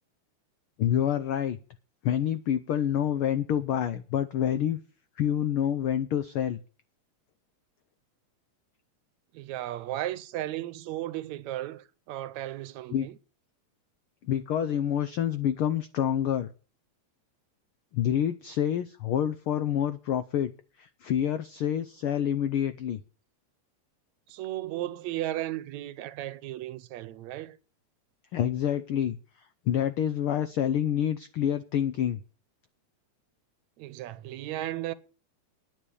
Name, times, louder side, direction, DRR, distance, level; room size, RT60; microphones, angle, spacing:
voice 1, 0.8-1.6 2.0-4.8 5.2-6.6 12.9-13.1 14.2-16.5 17.9-20.5 20.8-23.0 28.3-29.2 29.7-32.2, left 10 dB, 85° left, 1.2 m, -27 dB
voice 2, 9.3-13.2 24.3-27.6 33.8-34.9, right 14 dB, 80° right, 2.0 m, -35 dB
9.9 x 7.5 x 8.5 m
omnidirectional pair, 3.3 m